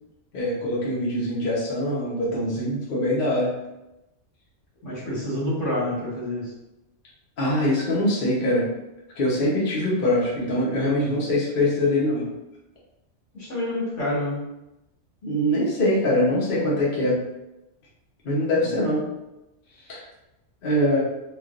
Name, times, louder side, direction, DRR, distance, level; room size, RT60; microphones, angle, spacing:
voice 1, 0.3-3.5 7.4-8.7 9.2-12.3 15.2-17.2 18.2-19.0 19.9-20.0 20.6-21.0, left 1 dB, 50° left, -7 dB, 0.9 m, -23 dB
voice 2, 4.8-6.5 10.9-11.3 13.3-14.4 18.5-18.8, left 1 dB, 75° left, -8 dB, 1.6 m, -28 dB
3.2 x 2.4 x 2.4 m, 0.94 s
omnidirectional pair, 1.3 m